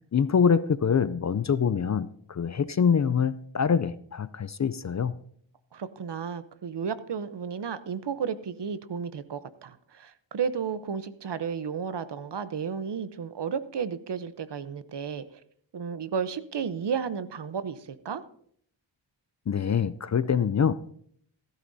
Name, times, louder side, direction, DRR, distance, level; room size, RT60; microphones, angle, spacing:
voice 1, 0.1-5.1 19.5-20.7, left 7 dB, 40° left, 16 dB, 0.4 m, -25 dB
voice 2, 5.7-15.4 15.7-18.2, right 6 dB, 60° right, 14 dB, 0.8 m, -33 dB
15.0 x 13.0 x 2.7 m, 0.64 s
wide cardioid pair, 70°, 47 cm